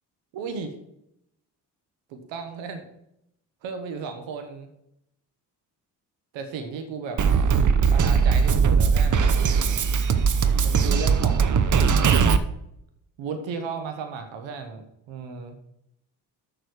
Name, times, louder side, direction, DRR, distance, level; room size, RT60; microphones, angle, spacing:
voice 1, 0.3-0.7 2.1-2.9 3.6-4.7 6.3-7.2 7.9-9.3 10.6-11.8 13.2-15.6, right 5 dB, 70° right, 7 dB, 1.3 m, -35 dB
Drum kit, 7.2-12.4, right 6 dB, 40° right, 0.8 m, -20 dB
6.7 x 6.5 x 6.4 m, 0.80 s
hypercardioid pair, 50°, 46 cm